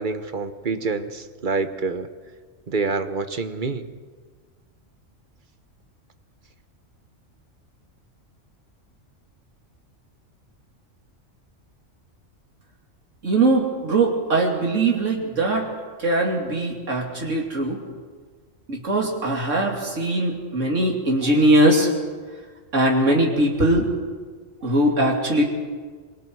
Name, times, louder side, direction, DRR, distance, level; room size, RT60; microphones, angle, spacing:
voice 1, 0.0-2.1 2.7-3.9, right 4 dB, 40° right, 10 dB, 1.2 m, -27 dB
voice 2, 13.2-15.7 16.0-17.8 18.7-21.9 22.7-23.9 24.6-25.4, right 1 dB, 70° right, 0 dB, 3.3 m, -21 dB
26.5 x 24.0 x 4.8 m, 1.5 s
omnidirectional pair, 1.4 m